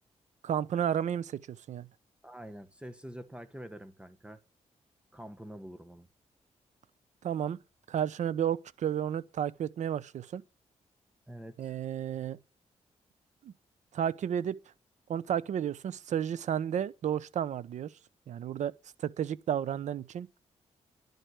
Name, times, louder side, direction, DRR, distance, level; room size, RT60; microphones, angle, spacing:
voice 1, 0.4-1.9 7.2-7.6 7.9-10.4 11.6-12.4 13.4-13.5 13.9-14.6 15.1-17.9 18.3-18.7 19.0-20.3, right 9 dB, 75° right, 0.9 m, -32 dB
voice 2, 2.2-4.4 5.1-6.1 11.3-11.8, right 1 dB, 10° right, 1.3 m, -46 dB
11.0 x 9.3 x 8.2 m
cardioid pair, 80°, 12 cm